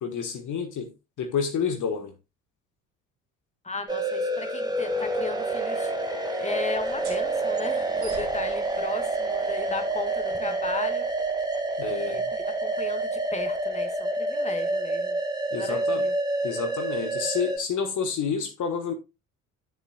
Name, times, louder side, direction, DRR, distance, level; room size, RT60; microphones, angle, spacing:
voice 1, 0.0-0.9 1.2-2.1 11.8-12.2 15.5-16.1 16.4-18.9, left 6 dB, 50° left, 1.3 m, -29 dB
voice 2, 3.6-11.1 11.8-15.2 15.5-16.1, left 3 dB, 15° left, 1.8 m, -36 dB
sound 1, 3.9-17.6, right 2 dB, 10° right, 1.8 m, -28 dB
sound 2, 6.7-14.0, right 3 dB, 65° right, 3.8 m, -50 dB
11.0 x 6.9 x 2.3 m
hypercardioid pair, 60°, 39 cm